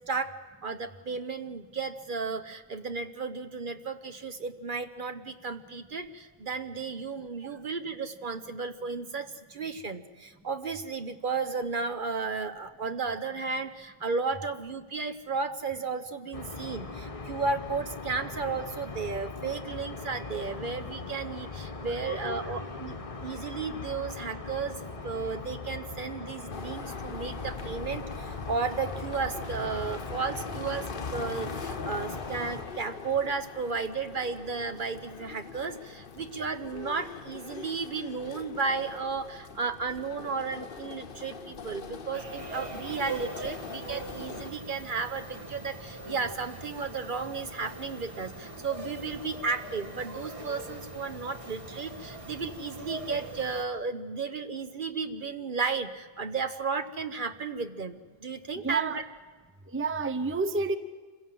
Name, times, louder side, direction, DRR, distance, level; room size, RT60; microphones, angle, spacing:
voice 1, 0.6-59.0, right 4 dB, 50° right, 8 dB, 1.0 m, -34 dB
sound 1, 16.3-32.7, left 3 dB, 30° left, 1.1 m, -40 dB
sound 2, 26.5-44.5, left 5 dB, 55° left, 1.0 m, -42 dB
sound 3, 42.1-53.6, right 2 dB, 30° right, 1.7 m, -41 dB
voice 2, 58.6-59.0 59.7-60.8, right 4 dB, 15° right, 11 dB, 0.7 m, -30 dB
26.0 x 16.5 x 7.6 m, 1.4 s
omnidirectional pair, 1.1 m